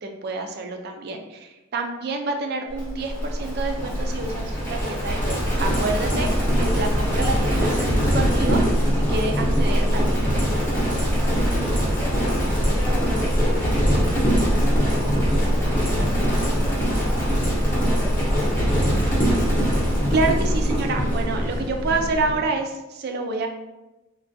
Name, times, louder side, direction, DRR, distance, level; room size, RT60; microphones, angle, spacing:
voice 1, 0.0-6.3 6.6-8.6 8.9-10.7 19.3-19.4 20.1-23.5, right 3 dB, 45° right, 4 dB, 0.3 m, -28 dB
Livestock farm animals working animals, 2.8-22.4, equal, 10° left, 0.7 m, -22 dB
voice 2, 12.0-18.4, left 2 dB, 70° left, -3 dB, 0.7 m, -38 dB
3.3 x 2.2 x 2.6 m, 1.0 s
head